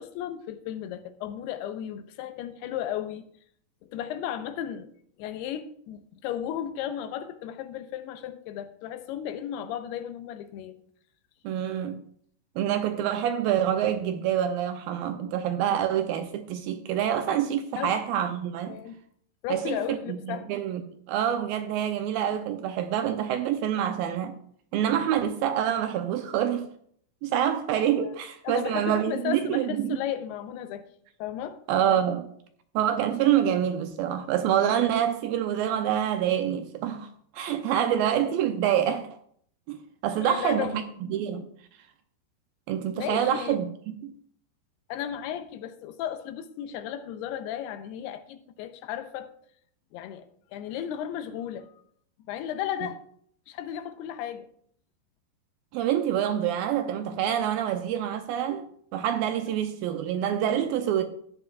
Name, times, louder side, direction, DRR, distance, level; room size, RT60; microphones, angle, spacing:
voice 1, 0.0-3.2 3.8-4.9 5.2-10.8 17.8-17.9 18.7-19.0 19.4-20.5 28.0-28.2 28.4-30.9 31.2-31.6 37.9-38.0 40.2-40.7 43.0-43.6 44.9-49.3 49.9-50.3 50.5-51.7 52.3-53.0 53.5-54.5, left 10 dB, 90° left, 2.7 m, -34 dB
voice 2, 11.4-12.0 12.6-18.8 19.5-20.8 21.1-24.4 24.7-26.7 27.2-30.0 31.7-32.3 32.8-39.1 39.7-39.8 40.0-40.8 41.1-41.5 42.7-44.1 55.7-61.0, right 10 dB, 80° right, 2.2 m, -26 dB
14.0 x 9.9 x 2.3 m
omnidirectional pair, 4.6 m